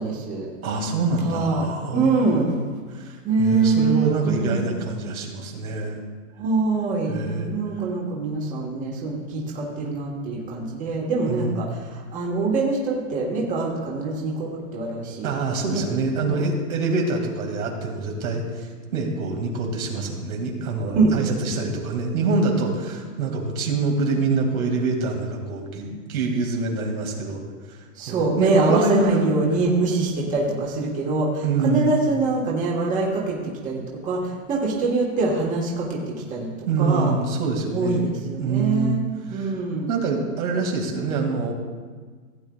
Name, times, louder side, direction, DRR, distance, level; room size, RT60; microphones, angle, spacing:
voice 1, 0.0-0.5 1.2-2.6 3.2-4.7 6.4-15.3 15.6-15.8 16.3-16.4 20.9-21.1 27.9-36.5 36.8-37.1 37.7-39.0 39.3-39.9, right 3 dB, 20° right, -2 dB, 1.4 m, -24 dB
voice 2, 0.6-2.4 2.9-6.0 7.1-7.5 11.3-11.6 15.2-27.4 27.7-29.3 31.4-32.0 36.7-38.1 38.4-39.0 39.3-39.5 39.9-41.5, right 3 dB, 80° right, 2 dB, 2.3 m, -25 dB
16.5 x 9.0 x 2.4 m, 1.5 s
supercardioid pair, 160°, 42 cm